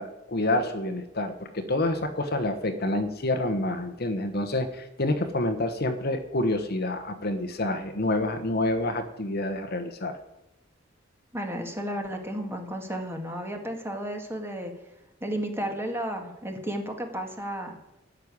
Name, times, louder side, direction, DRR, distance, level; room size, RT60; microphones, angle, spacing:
voice 1, 0.0-10.2, left 1 dB, 55° left, 7 dB, 1.2 m, -28 dB
voice 2, 11.3-14.7 15.2-17.8, equal, 10° right, 3 dB, 1.9 m, -33 dB
13.5 x 6.7 x 9.8 m, 0.95 s
head